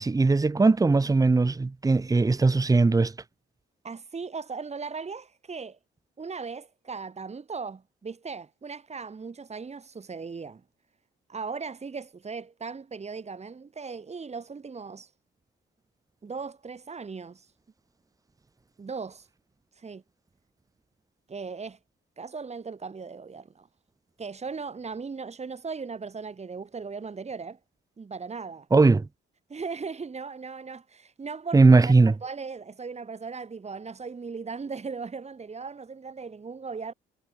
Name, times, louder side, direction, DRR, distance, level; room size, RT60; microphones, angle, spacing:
voice 1, 0.0-3.1 28.7-29.1 31.5-32.1, right 3 dB, 15° right, 1.0 m, -19 dB
voice 2, 3.8-5.8 6.2-10.6 11.3-15.1 16.2-17.5 18.8-19.3 19.7-20.0 21.3-21.8 22.2-23.7 24.2-27.6 28.0-28.7 29.5-36.9, right 5 dB, 35° right, 4.8 m, -38 dB
cardioid pair, 90°, 20 cm